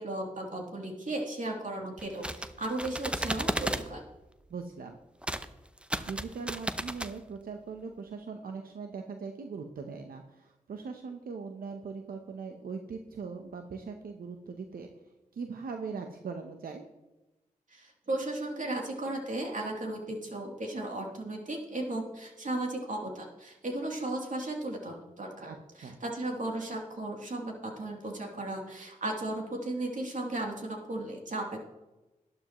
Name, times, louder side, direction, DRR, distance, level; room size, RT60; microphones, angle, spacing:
voice 1, 0.0-4.0 17.7-25.5 25.8-31.6, right 2 dB, 60° right, 0 dB, 3.0 m, -35 dB
sound 1, 2.0-3.9 5.2-5.5 5.8-7.1, right 1 dB, 5° right, 0.7 m, -34 dB
voice 2, 4.5-5.0 5.9-14.9 15.3-16.9 25.4-26.0, right 5 dB, 85° right, 5 dB, 0.8 m, -40 dB
12.0 x 11.5 x 3.1 m, 1.0 s
cardioid pair, 45°, 15 cm